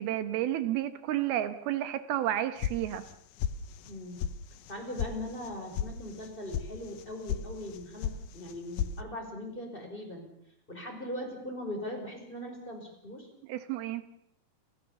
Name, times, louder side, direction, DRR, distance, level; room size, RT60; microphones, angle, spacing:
voice 1, 0.0-3.0 13.5-14.0, right 12 dB, 80° right, 12 dB, 2.9 m, -31 dB
sound 1, 2.6-3.1 3.4-3.9 4.2-4.3 4.7-5.1 5.4-5.9 6.2-6.6 7.0-7.4 7.7-8.2 8.4-8.9, left 10 dB, 80° left, 2.8 m, -33 dB
voice 2, 3.9-4.2 4.7-10.3 10.7-13.3, left 1 dB, 15° left, 2 dB, 4.9 m, -40 dB
29.5 x 16.0 x 7.1 m, 0.73 s
omnidirectional pair, 4.5 m